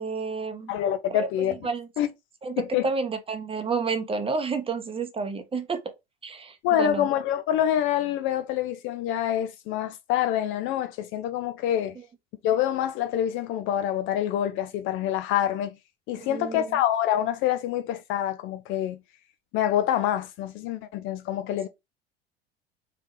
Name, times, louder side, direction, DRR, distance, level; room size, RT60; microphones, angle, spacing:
voice 1, 0.0-0.7 1.1-1.3 1.6-1.9 2.4-5.8 6.2-7.1 16.2-16.7, right 4 dB, 20° right, 0.8 m, -30 dB
voice 2, 0.7-1.6 2.0-2.1 2.6-2.9 6.6-12.0 12.4-15.7 16.1-19.0 19.5-21.7, left 11 dB, 40° left, 0.5 m, -26 dB
3.8 x 3.6 x 3.0 m
figure-of-eight pair, 70°, 31 cm